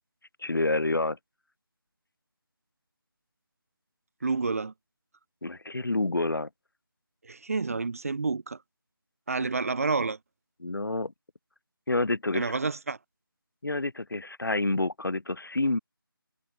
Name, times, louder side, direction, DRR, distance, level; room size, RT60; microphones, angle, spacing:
voice 1, 0.4-1.2 5.4-6.5 9.4-9.5 10.6-11.1 11.9-12.5 13.6-15.8, left 2 dB, 65° left, 4.1 m, -28 dB
voice 2, 4.2-4.7 7.2-8.6 9.3-10.2 12.3-13.0, right 4 dB, 40° right, 1.1 m, -29 dB
figure-of-eight pair, 165°, 12 cm